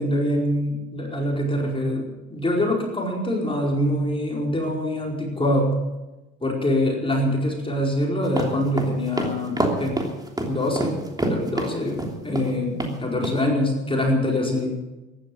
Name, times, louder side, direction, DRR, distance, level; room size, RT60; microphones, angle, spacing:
voice 1, 0.0-5.7 6.4-10.0 10.5-14.8, left 1 dB, 15° left, -1 dB, 4.9 m, -24 dB
sound 1, 8.3-12.5 12.8-12.9 13.2-13.4, right 1 dB, 10° right, 3.2 m, -26 dB
14.5 x 12.0 x 7.7 m, 1.1 s
hypercardioid pair, 65°, 32 cm